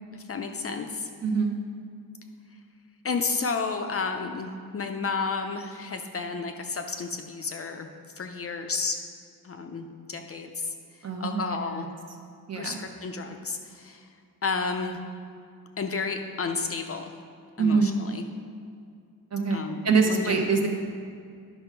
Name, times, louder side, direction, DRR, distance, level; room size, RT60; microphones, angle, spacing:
voice 1, 0.1-1.1 3.0-7.9 8.2-9.0 9.4-11.9 12.6-14.1 14.4-15.0 15.8-17.0 17.6-18.2 19.5-20.3, left 4 dB, 40° left, 5 dB, 0.5 m, -32 dB
voice 2, 1.2-1.6 11.0-11.9 12.5-12.8 17.6-18.0 19.3-20.7, right 4 dB, 40° right, 2 dB, 1.0 m, -25 dB
10.5 x 5.9 x 4.5 m, 2.3 s
wide cardioid pair, 160°, 37 cm